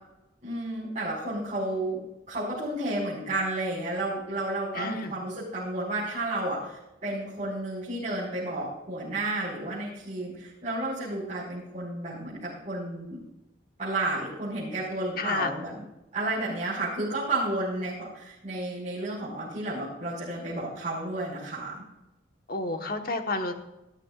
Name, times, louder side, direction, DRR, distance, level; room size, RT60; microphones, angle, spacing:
voice 1, 0.4-2.0 2.3-13.2 13.8-15.8 16.1-21.8, right 2 dB, 40° right, -9 dB, 5.2 m, -32 dB
voice 2, 4.7-5.1 15.2-15.5 22.5-23.5, left 3 dB, 50° left, 5 dB, 1.3 m, -30 dB
20.5 x 13.0 x 2.5 m, 0.94 s
head